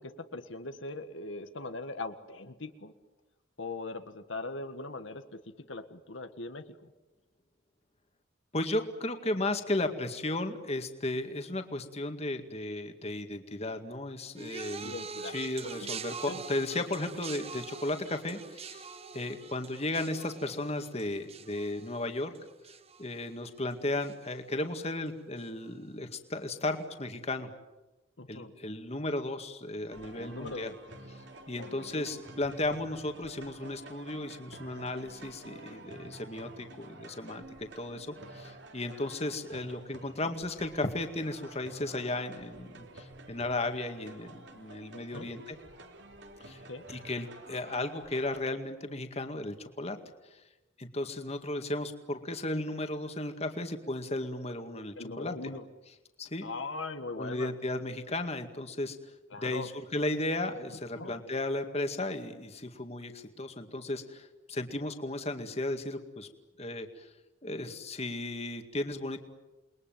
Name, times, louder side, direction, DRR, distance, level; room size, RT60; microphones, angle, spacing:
voice 1, 0.0-2.9 3.6-5.2 5.7-6.6 14.8-15.4 15.8-15.9 16.3-16.4 28.2-28.5 30.2-30.8 31.6-32.1 44.9-45.3 46.7-46.9 55.0-55.6 56.4-57.5 59.3-59.7 61.0-61.2, left 3 dB, 80° left, 8 dB, 1.7 m, -40 dB
voice 2, 8.5-15.0 15.2-18.9 19.1-22.3 23.0-27.5 28.3-30.7 31.1-31.2 31.5-45.6 46.4-46.6 46.9-50.0 50.3-50.4 50.8-55.3 56.2-56.5 57.2-59.0 59.4-66.3 66.6-67.1 67.4-69.2, left 2 dB, 35° left, 6 dB, 2.1 m, -35 dB
sound 1, 14.3-23.7 24.0-24.5 25.4-25.5, right 5 dB, 30° right, 1.0 m, -44 dB
sound 2, 29.9-48.4, right 2 dB, 65° right, 3.1 m, -50 dB
29.0 x 21.5 x 9.2 m, 1.1 s
head